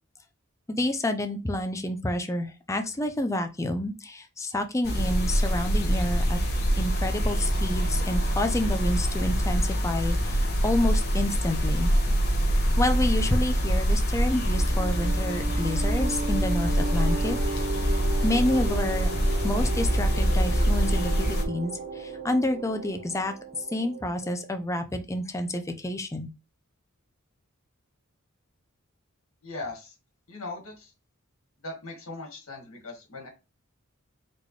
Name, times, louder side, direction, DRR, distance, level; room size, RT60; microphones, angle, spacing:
voice 1, 0.7-6.4 6.8-11.9 12.8-17.4 18.2-19.1 19.4-23.3 23.7-26.3, left 1 dB, 15° left, 0.5 m, -29 dB
sound 1, 4.8-21.4, equal, 50° left, 1.0 m, -25 dB
sound 2, 14.3-24.6, right 3 dB, 45° right, 0.7 m, -36 dB
voice 2, 29.4-29.9 30.3-30.9 31.6-33.3, left 2 dB, 75° left, 2.0 m, -39 dB
4.2 x 3.2 x 3.2 m
head